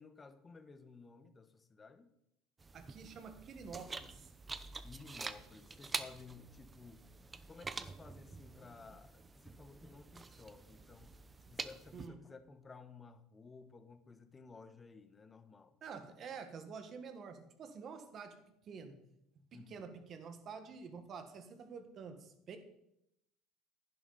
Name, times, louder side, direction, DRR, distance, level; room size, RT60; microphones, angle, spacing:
voice 1, 0.0-2.1 4.8-7.0 7.5-11.2 11.5-15.7 19.5-20.0, left 4 dB, 25° left, 10 dB, 1.1 m, -56 dB
sound 1, 2.6-12.1, right 4 dB, 20° right, 0.7 m, -47 dB
voice 2, 2.7-4.3 11.9-12.2 15.8-18.4 18.6-19.0 19.3-22.6, right 5 dB, 45° right, 8 dB, 1.6 m, -48 dB
11.0 x 10.5 x 4.2 m, 0.80 s
supercardioid pair, 100°, 0 cm